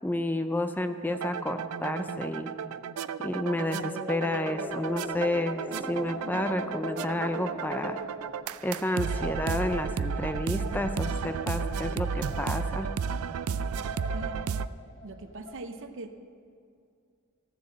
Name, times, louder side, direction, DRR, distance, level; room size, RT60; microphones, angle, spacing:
voice 1, 0.0-2.5 3.2-5.6 5.9-8.0 8.6-12.9, left 1 dB, 10° left, 8 dB, 0.4 m, -30 dB
sound 1, 1.1-14.7, right 6 dB, 90° right, 0.4 m, -33 dB
sound 2, 3.6-8.7, left 2 dB, 10° right, 0.9 m, -41 dB
sound 3, 4.6-15.5, left 2 dB, 60° left, 1.3 m, -46 dB
voice 2, 15.0-16.2, right 2 dB, 65° right, 8 dB, 0.7 m, -41 dB
14.0 x 7.3 x 7.5 m, 2.3 s
head